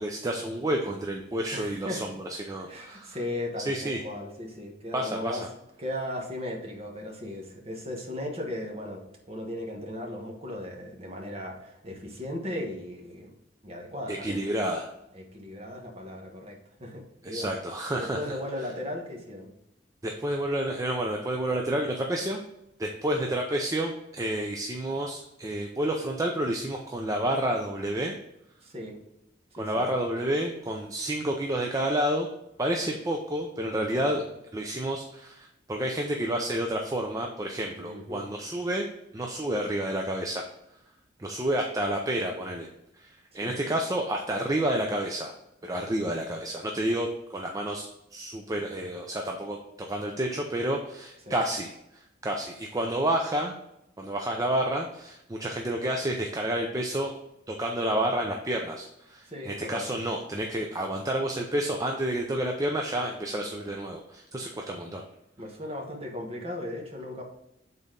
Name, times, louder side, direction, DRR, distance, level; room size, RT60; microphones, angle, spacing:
voice 1, 0.0-3.2 3.7-4.0 4.9-5.4 14.1-14.9 17.2-18.4 20.0-22.4 22.8-28.1 29.5-32.3 32.6-34.2 34.5-38.9 39.1-40.5 41.2-42.7 42.9-45.3 45.6-53.5 54.0-57.1 57.5-65.1, right 1 dB, 20° right, 2 dB, 0.5 m, -30 dB
voice 2, 1.5-2.1 2.7-5.4 5.8-13.3 13.6-14.4 15.1-17.5 17.9-19.5 28.6-29.0 29.6-29.9 33.9-34.2 37.8-38.3 43.4-43.6 51.3-51.4 59.3-59.9 65.4-67.2, left 1 dB, 35° right, 1 dB, 1.3 m, -37 dB
7.1 x 4.1 x 3.8 m, 0.85 s
head